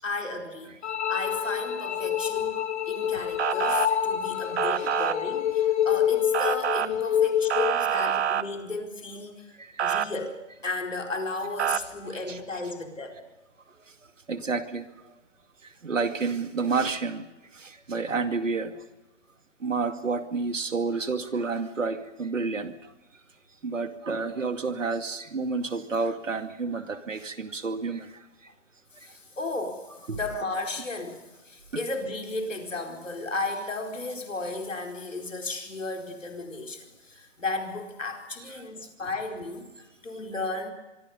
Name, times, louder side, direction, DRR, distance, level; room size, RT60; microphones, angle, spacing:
voice 1, 0.0-2.6 2.9-10.4 10.6-13.2 18.1-18.2 29.0-40.7, left 2 dB, 90° left, 3 dB, 4.5 m, -34 dB
sound 1, 0.8-7.8, left 9 dB, 65° left, 2.7 m, -27 dB
Motor vehicle (road) / Siren, 3.4-3.9 4.6-5.1 6.3-6.9 7.5-8.4 9.8-10.1 11.6-11.8, right 9 dB, 60° right, 1.3 m, -26 dB
voice 2, 14.3-14.8 15.8-17.2 17.5-18.7 19.6-22.7 23.6-28.1 30.1-30.2, right 4 dB, 85° right, 8 dB, 2.4 m, -29 dB
24.5 x 24.0 x 5.5 m, 1.0 s
hypercardioid pair, 135°, 37 cm